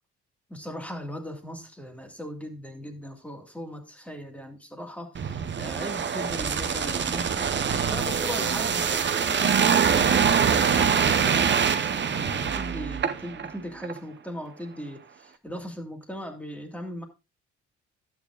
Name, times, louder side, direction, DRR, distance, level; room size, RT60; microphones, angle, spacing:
voice 1, 0.5-17.1, equal, 5° left, 4 dB, 2.2 m, -39 dB
sound 1, 5.1-13.5 13.8-14.0, right 7 dB, 35° right, 0.9 m, -24 dB
12.0 x 8.7 x 2.4 m, 0.28 s
cardioid pair, 90°, 30 cm